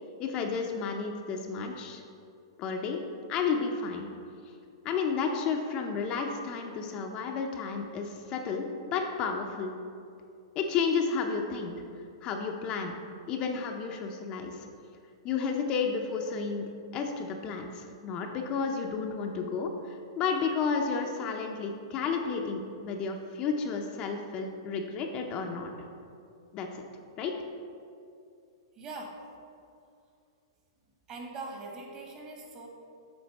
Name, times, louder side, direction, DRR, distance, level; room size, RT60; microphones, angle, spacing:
voice 1, 0.2-2.0 2.6-3.0 3.3-4.1 4.8-9.7 10.6-11.7 12.2-12.9 13.3-14.7 15.2-25.7 26.5-26.8 27.2-27.3, left 5 dB, 35° left, 3 dB, 0.6 m, -32 dB
voice 2, 28.7-29.2 31.1-32.7, right 3 dB, 30° right, 1 dB, 1.3 m, -41 dB
7.8 x 4.6 x 4.1 m, 2.5 s
hypercardioid pair, 135°, 3 cm